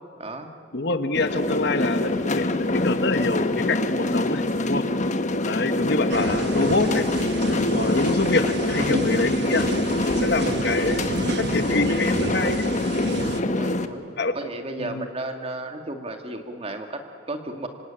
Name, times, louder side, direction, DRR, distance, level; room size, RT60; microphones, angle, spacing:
voice 1, 0.2-0.5 13.5-14.1 14.3-17.7, right 2 dB, 35° right, 5 dB, 2.1 m, -34 dB
voice 2, 0.7-4.8 5.4-7.0 7.4-9.6 10.1-12.6 14.2-14.4 14.8-15.1, left 2 dB, 65° left, 8 dB, 1.5 m, -26 dB
sound 1, 1.1-13.9, left 2 dB, 40° left, 1.2 m, -25 dB
sound 2, 6.1-13.4, right 2 dB, 65° right, 1.1 m, -31 dB
26.0 x 25.5 x 8.9 m, 2.5 s
head